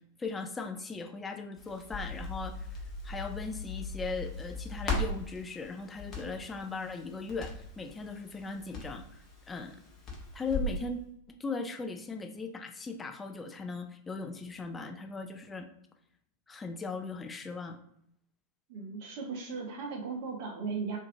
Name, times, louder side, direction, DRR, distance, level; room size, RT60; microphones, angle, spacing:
voice 1, 0.2-2.7 3.0-9.8 10.3-11.0 11.3-15.7 16.5-17.8, left 4 dB, 15° left, 5 dB, 0.3 m, -38 dB
Crackle, 1.6-10.8, left 2 dB, 30° left, 0.8 m, -38 dB
voice 2, 18.7-21.0, right 5 dB, 50° right, 0 dB, 0.7 m, -37 dB
2.5 x 2.4 x 2.6 m, 0.70 s
figure-of-eight pair, 90°, 0 cm